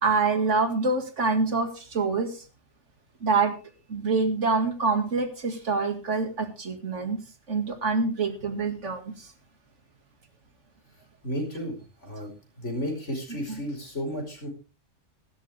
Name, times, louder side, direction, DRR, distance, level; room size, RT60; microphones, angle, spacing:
voice 1, 0.0-2.4 3.2-3.6 3.9-7.2 7.5-9.3 13.5-13.6, right 4 dB, 85° right, 7 dB, 2.4 m, -26 dB
voice 2, 11.2-12.3 12.6-14.5, equal, 85° left, 2 dB, 5.4 m, -33 dB
16.0 x 12.5 x 3.4 m, 0.33 s
omnidirectional pair, 1.2 m